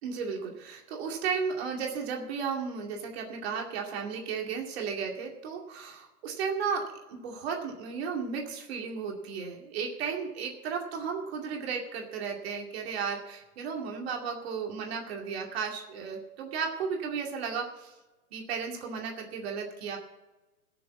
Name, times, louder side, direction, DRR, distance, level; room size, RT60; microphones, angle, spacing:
voice 1, 0.0-17.9 18.3-20.0, right 6 dB, 40° right, 1 dB, 2.4 m, -34 dB
17.0 x 7.0 x 7.1 m, 1.1 s
hypercardioid pair, 160°, 46 cm